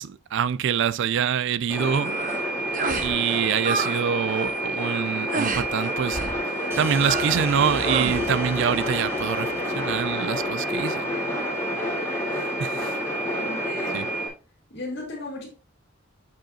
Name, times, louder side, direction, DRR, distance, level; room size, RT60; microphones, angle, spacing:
voice 1, 0.0-2.2 3.0-6.3 6.8-11.1 12.6-12.9 13.9-14.1, right 7 dB, 60° right, 0.3 m, -25 dB
sound 1, 1.7-14.3, equal, 15° left, 2.2 m, -28 dB
sound 2, 2.0-2.4 2.7-3.1 3.4-4.0 4.3-4.6 5.3-5.7 6.1-6.4 7.0-7.5 7.8-8.2, right 4 dB, 40° right, 0.8 m, -29 dB
sound 3, 6.7-11.1, right 1 dB, 10° right, 0.9 m, -40 dB
voice 2, 13.4-14.1 14.7-15.5, left 1 dB, 55° left, 2.3 m, -35 dB
7.6 x 4.8 x 2.8 m
head